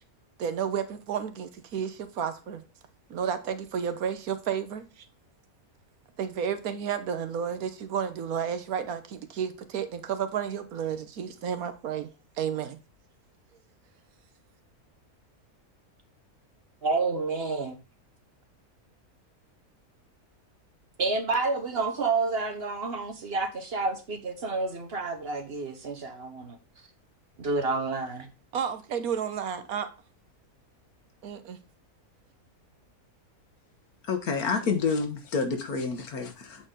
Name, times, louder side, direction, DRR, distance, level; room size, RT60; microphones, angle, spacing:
voice 1, 0.4-2.6 3.1-4.8 6.2-12.1 12.4-12.8 28.5-29.9 31.2-31.6, right 8 dB, 75° right, 1.3 m, -31 dB
voice 2, 16.8-17.8 21.0-26.6 27.4-28.3, right 3 dB, 45° right, 1.1 m, -29 dB
voice 3, 34.1-36.6, left 5 dB, 75° left, 1.7 m, -28 dB
8.1 x 4.3 x 3.7 m
omnidirectional pair, 1.6 m